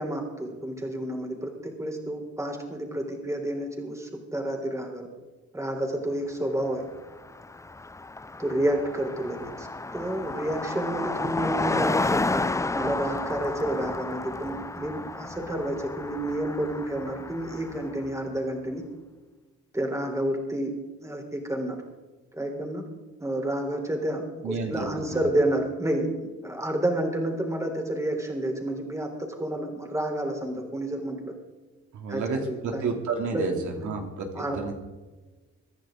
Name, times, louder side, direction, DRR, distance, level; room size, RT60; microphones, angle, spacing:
voice 1, 0.0-5.1 5.5-6.8 8.4-18.8 19.7-20.7 21.0-21.8 22.4-22.8 23.2-31.3 32.1-32.9 33.3-33.4 33.7-33.9 34.3-34.6, right 1 dB, 10° right, 2 dB, 3.9 m, -30 dB
Car passing by, 6.8-6.9 7.1-18.1, left 2 dB, 10° left, 0.5 m, -32 dB
voice 2, 24.4-25.2 31.9-34.3 34.6-34.7, right 4 dB, 75° right, 2 dB, 2.9 m, -31 dB
24.5 x 10.5 x 3.9 m, 1.2 s
cardioid pair, 90°, 30 cm